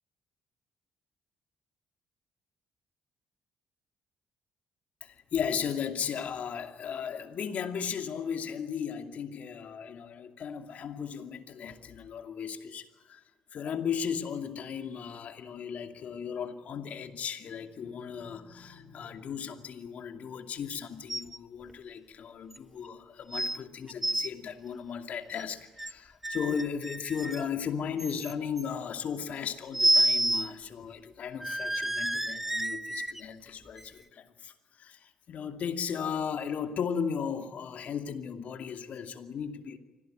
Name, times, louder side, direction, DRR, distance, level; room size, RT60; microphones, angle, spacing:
voice 1, 5.0-13.2 13.5-39.8, left 7 dB, 60° left, 2.5 m, -36 dB
sound 1, 21.1-21.4 21.7-21.8 22.5-22.6 23.3-23.6 23.9-24.3 25.4-25.9 26.2-27.5 28.0-28.6 29.7-30.5 30.8-30.9 31.4-33.2 33.8-33.9, right 1 dB, 10° right, 0.8 m, -29 dB
25.0 x 17.5 x 9.2 m
hypercardioid pair, 55°, 3 cm